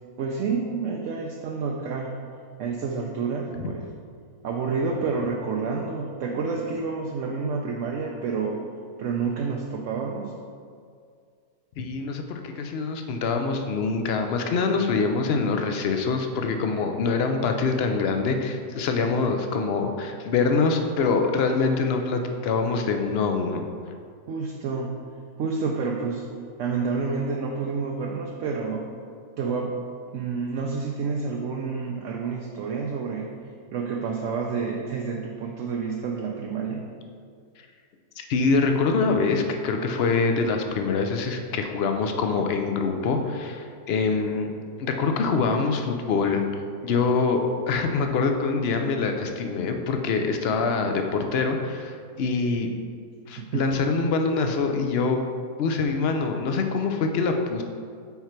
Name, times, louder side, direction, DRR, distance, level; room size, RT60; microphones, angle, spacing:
voice 1, 0.2-2.1 2.6-3.8 4.4-8.6 9.0-10.4 24.3-25.0 25.4-26.3 26.6-28.9 29.4-29.8 30.1-33.3 33.7-36.8 53.4-53.7, right 5 dB, 65° right, 0 dB, 0.8 m, -29 dB
voice 2, 11.8-23.7 38.2-44.5 44.8-52.7 53.3-55.2 55.6-57.6, left 4 dB, 65° left, 5 dB, 0.6 m, -25 dB
5.7 x 4.4 x 5.8 m, 2.2 s
omnidirectional pair, 1.6 m